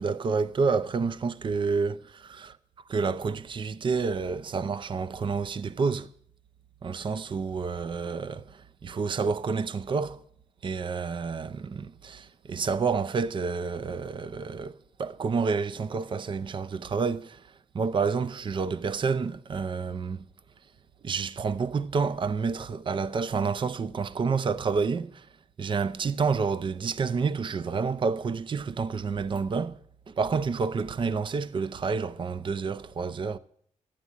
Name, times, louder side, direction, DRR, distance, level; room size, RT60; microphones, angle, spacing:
voice 1, 0.0-2.6 2.9-6.1 6.8-10.2 10.6-17.4 17.7-20.2 21.0-25.3 25.6-29.8 30.1-33.4, right 5 dB, 40° right, 0.5 m, -29 dB
13.0 x 9.6 x 8.5 m
wide cardioid pair, 125°, 13 cm